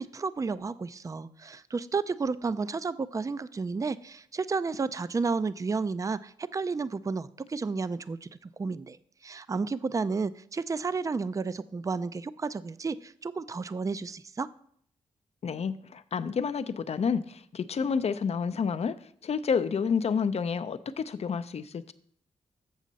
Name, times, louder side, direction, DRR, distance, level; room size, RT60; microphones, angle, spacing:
voice 1, 0.0-9.0 9.2-14.5, right 4 dB, 25° right, 15 dB, 0.4 m, -32 dB
voice 2, 15.4-19.0 19.2-21.9, left 6 dB, 55° left, 12 dB, 0.5 m, -29 dB
7.3 x 6.4 x 4.0 m, 0.63 s
cardioid pair, 50°, 13 cm